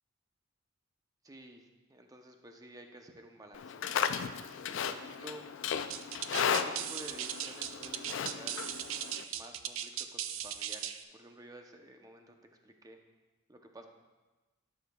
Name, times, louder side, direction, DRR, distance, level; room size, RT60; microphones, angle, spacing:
voice 1, 1.2-4.1 4.7-5.5 6.2-8.7 9.3-12.4 12.6-13.0 13.5-13.9, right 1 dB, 20° right, 4 dB, 0.7 m, -52 dB
Livestock farm animals working animals, 3.5-9.2, left 7 dB, 65° left, 0.4 m, -35 dB
sound 1, 5.9-11.0, right 10 dB, 70° right, 0.4 m, -38 dB
12.0 x 6.6 x 2.3 m, 1.2 s
head